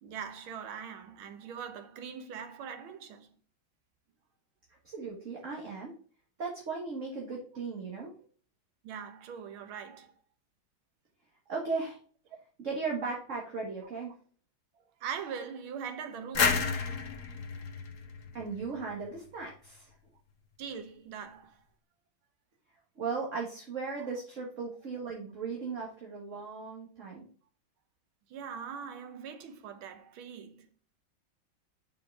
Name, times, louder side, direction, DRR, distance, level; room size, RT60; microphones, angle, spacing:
voice 1, 0.0-3.3 8.8-10.1 15.0-16.8 20.6-21.6 24.0-24.1 26.5-26.6 28.3-30.7, right 7 dB, 90° right, 1.8 m, -42 dB
voice 2, 4.8-5.9 6.4-8.1 11.5-12.0 12.6-14.1 18.3-19.9 23.0-27.3, right 4 dB, 40° right, 1.7 m, -37 dB
sound 1, 16.3-19.1, left 5 dB, 50° left, 1.2 m, -31 dB
5.5 x 5.1 x 4.7 m
omnidirectional pair, 2.2 m